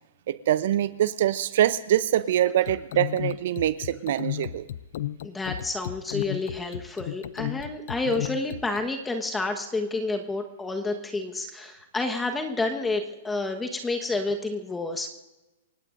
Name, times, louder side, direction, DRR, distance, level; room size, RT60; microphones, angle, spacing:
voice 1, 0.3-4.7, right 12 dB, 60° right, 14 dB, 0.6 m, -24 dB
sound 1, 2.6-8.9, left 12 dB, 65° left, 0.5 m, -34 dB
voice 2, 5.2-15.1, left 3 dB, 10° left, 4 dB, 1.3 m, -29 dB
28.5 x 17.0 x 2.6 m, 1.1 s
hypercardioid pair, 130°, 0 cm